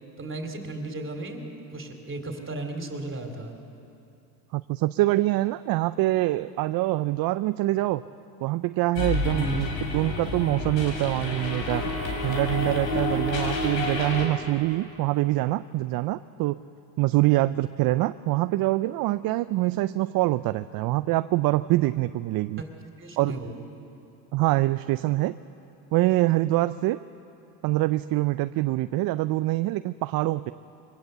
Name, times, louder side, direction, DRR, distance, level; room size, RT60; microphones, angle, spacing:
voice 1, 0.2-1.4 1.7-3.6 9.3-9.6 23.0-23.6, right 2 dB, 25° right, 4 dB, 3.4 m, -34 dB
voice 2, 4.5-8.0 8.4-9.7 9.9-11.9 12.2-16.6 17.0-22.6 23.2-23.3 24.3-25.4 25.9-27.0 27.6-30.5, right 18 dB, 50° right, 13 dB, 0.5 m, -25 dB
sound 1, 9.0-14.3, left 2 dB, 90° left, 3.8 m, -29 dB
23.0 x 17.5 x 7.9 m, 2.8 s
supercardioid pair, 90°, 47 cm